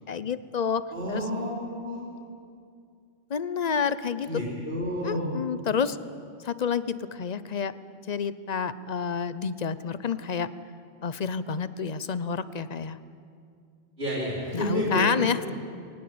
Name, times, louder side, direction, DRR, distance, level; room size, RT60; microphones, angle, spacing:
voice 1, 0.0-0.8 1.1-1.2 3.3-4.4 5.0-6.0 6.4-7.7 8.1-10.5 11.0-13.0 14.5-15.5, left 6 dB, 40° left, 15 dB, 0.7 m, -29 dB
voice 2, 0.9-1.5 1.8-2.0 4.2-5.3 14.0-15.5, equal, 55° right, -4 dB, 4.4 m, -30 dB
22.0 x 19.0 x 8.6 m, 2.3 s
omnidirectional pair, 1.2 m